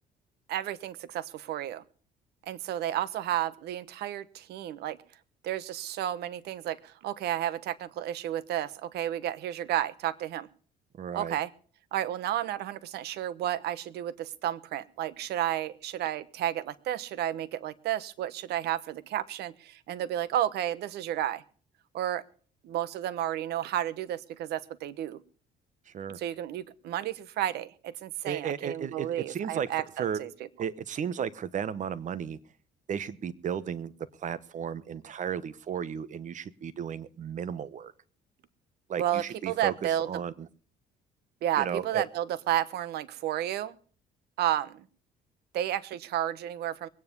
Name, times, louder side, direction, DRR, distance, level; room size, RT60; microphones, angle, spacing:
voice 1, 0.5-1.8 2.5-5.0 5.4-10.5 11.1-11.5 11.9-21.4 21.9-22.2 22.6-25.2 26.1-30.3 39.0-40.1 41.4-43.8 44.4-44.8 45.5-46.9, right 12 dB, 75° right, 17 dB, 1.1 m, -32 dB
voice 2, 11.0-11.4 25.9-26.2 28.2-30.2 30.6-32.4 32.9-33.9 34.2-37.9 38.9-39.7 40.1-40.5 41.6-42.0, right 8 dB, 50° right, 17 dB, 1.1 m, -34 dB
21.5 x 9.8 x 5.3 m, 0.44 s
cardioid pair, 110°, 17 cm